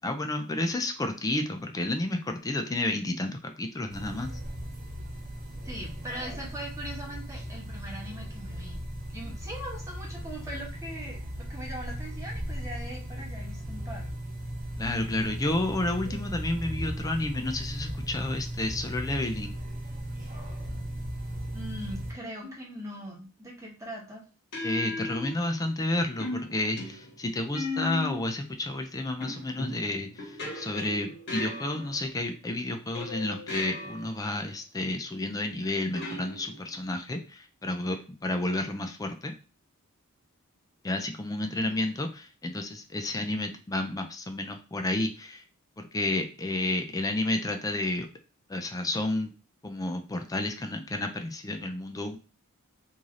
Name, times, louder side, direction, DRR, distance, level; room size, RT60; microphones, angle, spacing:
voice 1, 0.0-4.3 14.8-19.5 24.6-39.3 40.8-45.4 45.8-48.1 48.5-49.3 49.6-52.2, left 2 dB, 15° left, 5 dB, 0.4 m, -31 dB
sound 1, 3.9-22.1, equal, 35° right, 1.3 m, -37 dB
voice 2, 5.6-8.9 9.1-14.1 21.5-24.2 41.5-41.7, right 1 dB, 15° right, -2 dB, 1.0 m, -41 dB
sound 2, 22.4-22.8 24.5-25.8 26.2-28.4 29.2-32.2 32.9-34.2 35.9-36.8, left 2 dB, 50° left, 1.2 m, -37 dB
3.1 x 2.7 x 3.7 m, 0.35 s
head